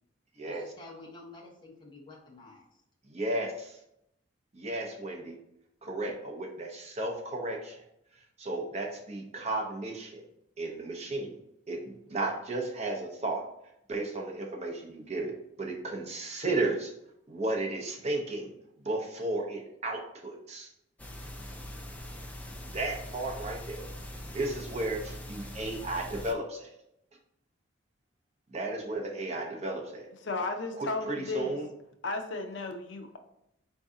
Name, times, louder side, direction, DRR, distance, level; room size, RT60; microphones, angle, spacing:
voice 1, 0.4-2.7, left 2 dB, 25° left, -2 dB, 0.9 m, -49 dB
voice 2, 3.1-3.8 4.5-5.4 5.8-7.8 8.4-10.2 10.6-11.4 11.7-13.4 13.9-16.9 17.3-18.5 18.8-20.7 22.7-23.9 24.3-26.7 28.5-30.1 30.7-31.7, right 2 dB, 35° right, 1 dB, 0.6 m, -34 dB
sound 1, 21.0-26.3, left 1 dB, 10° left, 0.4 m, -42 dB
voice 3, 30.2-31.6 32.0-33.2, left 3 dB, 65° left, 5 dB, 0.5 m, -34 dB
4.6 x 2.7 x 3.6 m, 0.80 s
head